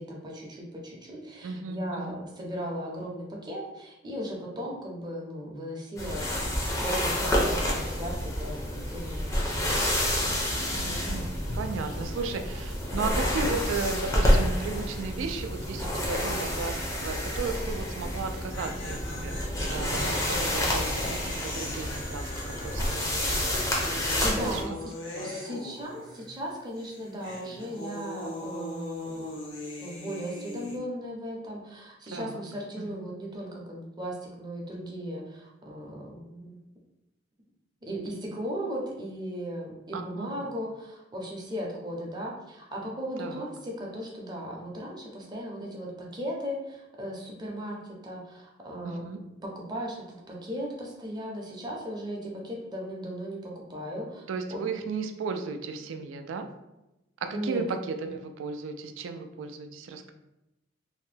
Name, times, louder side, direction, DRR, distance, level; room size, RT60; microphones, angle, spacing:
voice 1, 0.0-9.9 11.9-12.1 13.1-13.3 24.2-24.9 25.2-29.3 29.8-36.6 37.8-49.0 49.4-54.2 54.5-54.7 57.3-57.6, equal, 20° right, -2 dB, 0.6 m, -37 dB
voice 2, 1.4-2.2 10.7-19.3 19.7-22.3 22.6-23.6 24.4-24.6 25.1-25.4 32.1-32.4 32.8-33.0 39.9-40.3 43.2-43.5 48.8-49.2 54.3-56.4 57.2-60.1, right 4 dB, 75° right, 6 dB, 0.3 m, -35 dB
sound 1, 6.0-24.6, equal, 15° left, 0.5 m, -29 dB
sound 2, 18.3-26.5 26.8-30.8, left 2 dB, 75° left, 0.6 m, -40 dB
2.7 x 2.1 x 3.2 m, 0.94 s
head